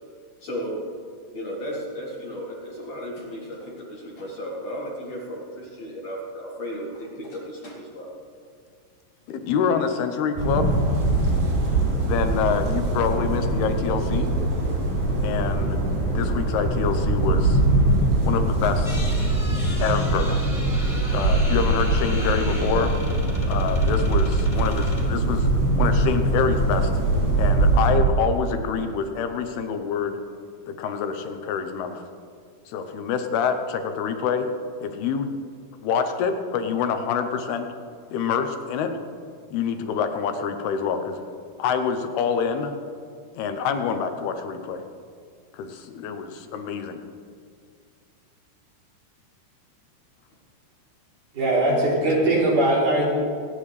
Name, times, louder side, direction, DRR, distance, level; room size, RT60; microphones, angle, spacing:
voice 1, 0.4-0.9 1.3-8.1, equal, 50° left, -3 dB, 2.4 m, -34 dB
voice 2, 9.3-10.8 12.1-14.3 15.2-17.6 18.2-19.0 19.8-20.5 21.1-22.9 23.5-25.5 25.8-26.9 27.4-30.2 30.7-32.0 32.7-34.5 34.8-35.3 35.8-37.7 38.1-38.9 39.5-41.2 41.6-42.7 43.4-44.8 45.5-47.0, left 6 dB, 80° left, 7 dB, 2.7 m, -26 dB
sound 1, 10.4-27.9, right 2 dB, 90° right, 5.7 m, -22 dB
sound 2, 18.8-25.0, left 1 dB, 10° left, 2.4 m, -37 dB
voice 3, 51.3-53.1, right 1 dB, 50° right, -7 dB, 4.7 m, -20 dB
26.0 x 9.4 x 3.3 m, 2.2 s
omnidirectional pair, 4.7 m